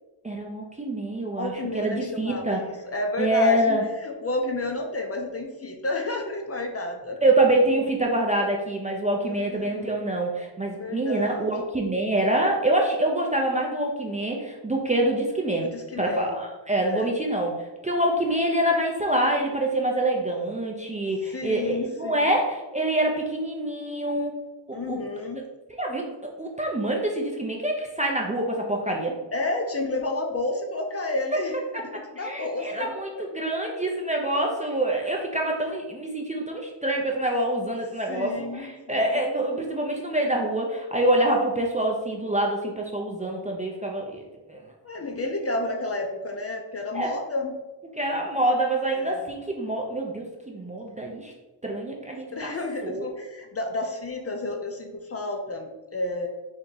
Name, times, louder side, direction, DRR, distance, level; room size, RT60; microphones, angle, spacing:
voice 1, 0.2-2.6 3.2-3.8 7.2-15.7 16.0-24.3 24.7-25.0 25.8-29.2 32.2-44.2 44.5-44.6 46.9-47.1 48.0-51.3 51.6-52.5 52.8-53.1, right 1 dB, 15° right, -1 dB, 0.4 m, -26 dB
voice 2, 1.4-7.2 9.4-10.0 10.8-11.5 15.6-16.4 16.8-17.1 21.3-22.2 24.7-25.4 29.3-33.2 35.0-35.1 35.6-35.8 38.1-39.1 44.8-47.6 48.9-49.3 50.5-50.7 52.3-56.3, left 2 dB, 35° left, 2 dB, 0.5 m, -31 dB
3.5 x 2.7 x 3.8 m, 1.1 s
wide cardioid pair, 100°, 45 cm